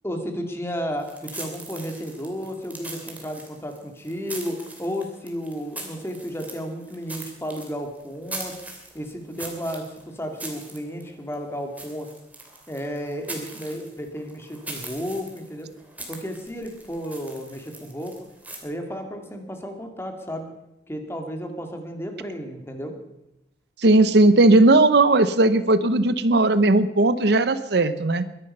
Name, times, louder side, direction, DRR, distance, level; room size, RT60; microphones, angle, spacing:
voice 1, 0.0-8.6 8.9-12.1 12.7-15.7 16.1-18.2 18.6-20.5 20.9-22.9, equal, 15° left, 5 dB, 2.2 m, -33 dB
sound 1, 1.0-18.6, right 2 dB, 10° right, 2.8 m, -41 dB
voice 2, 23.8-28.2, right 2 dB, 65° right, 13 dB, 0.9 m, -17 dB
22.0 x 11.0 x 5.5 m, 0.88 s
head